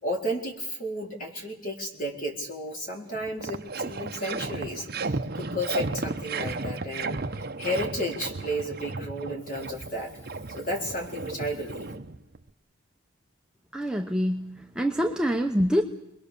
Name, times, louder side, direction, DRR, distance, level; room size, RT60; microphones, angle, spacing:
voice 1, 0.0-10.1 10.5-11.9, equal, 40° left, 0 dB, 4.3 m, -33 dB
sound 1, 2.7-2.8 3.1-12.5, right 3 dB, 45° right, 0.9 m, -34 dB
voice 2, 13.7-15.8, equal, 5° right, 2 dB, 0.9 m, -25 dB
28.5 x 21.5 x 7.0 m, 0.82 s
head